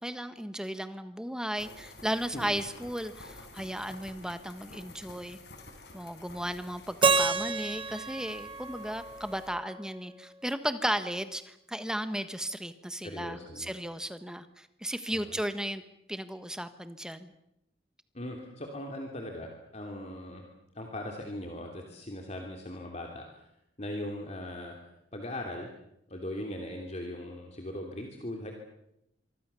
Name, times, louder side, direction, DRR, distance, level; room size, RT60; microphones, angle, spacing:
voice 1, 0.0-5.4 5.9-15.8 16.1-17.3, equal, 5° right, 10 dB, 1.3 m, -35 dB
sound 1, 1.6-9.5, left 2 dB, 60° left, 5.1 m, -51 dB
Keyboard (musical), 7.0-10.0, right 4 dB, 25° right, 1.4 m, -29 dB
voice 2, 13.0-13.7 15.1-15.4 18.1-20.5 20.7-23.5 23.8-24.8 25.1-25.7 26.1-28.5, left 1 dB, 35° left, 2 dB, 3.0 m, -39 dB
26.0 x 24.0 x 7.0 m, 0.81 s
head